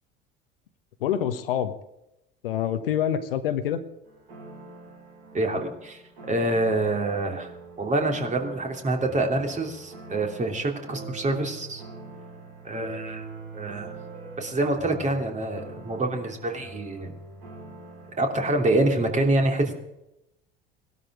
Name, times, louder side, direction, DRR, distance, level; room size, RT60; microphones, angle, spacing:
voice 1, 1.0-1.7 2.4-3.8, left 9 dB, 70° left, 11 dB, 1.2 m, -26 dB
sound 1, 4.0-18.9, right 3 dB, 70° right, 6.2 m, -43 dB
voice 2, 5.3-7.5 7.8-11.8 12.6-13.2 13.5-14.0 14.4-17.1 18.2-19.7, right 2 dB, 25° right, 3 dB, 3.1 m, -26 dB
18.5 x 12.5 x 4.9 m, 0.87 s
figure-of-eight pair, 65°, 29 cm